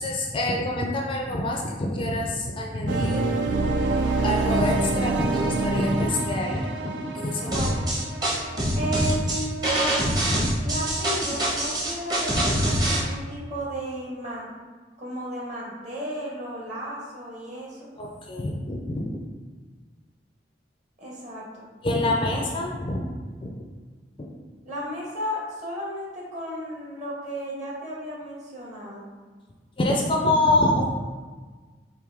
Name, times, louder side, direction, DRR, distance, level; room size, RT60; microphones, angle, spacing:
voice 1, 0.0-3.3 3.6-3.7 4.2-7.6 10.3-10.4 18.0-19.2 21.8-23.0 23.4-23.6 29.8-30.9, left 1 dB, 30° left, 0 dB, 0.4 m, -26 dB
sound 1, 2.9-9.7, right 3 dB, 85° right, 0.4 m, -27 dB
voice 2, 7.4-7.8 8.7-10.1 10.6-14.5 15.0-17.9 21.0-21.6 22.3-22.4 24.6-29.1, right 1 dB, 40° right, -5 dB, 1.4 m, -34 dB
sound 2, 7.5-13.0, right 1 dB, 25° right, 0.9 m, -24 dB
4.8 x 2.6 x 3.6 m, 1.4 s
head